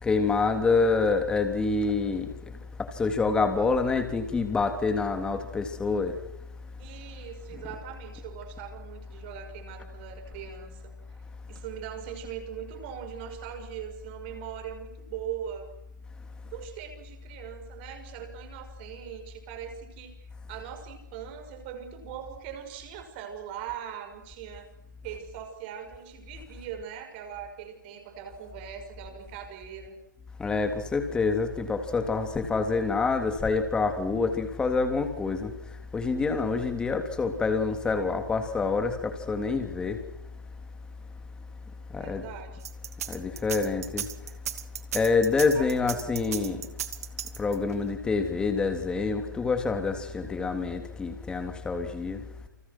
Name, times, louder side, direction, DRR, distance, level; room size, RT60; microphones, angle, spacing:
voice 1, 0.0-2.3 2.8-6.1 7.5-7.6 30.4-35.5 35.9-40.0 41.9-42.3 43.1-44.0 44.9-46.6 47.4-52.2, left 4 dB, 10° left, 3.3 m, -27 dB
voice 2, 6.8-10.9 11.5-15.7 16.4-20.2 20.5-24.7 25.0-30.0 41.9-42.6 45.5-46.1, right 9 dB, 30° right, 6.5 m, -41 dB
sound 1, 42.6-47.7, right 10 dB, 50° right, 2.5 m, -35 dB
30.0 x 27.0 x 6.3 m
figure-of-eight pair, 135°, 10 cm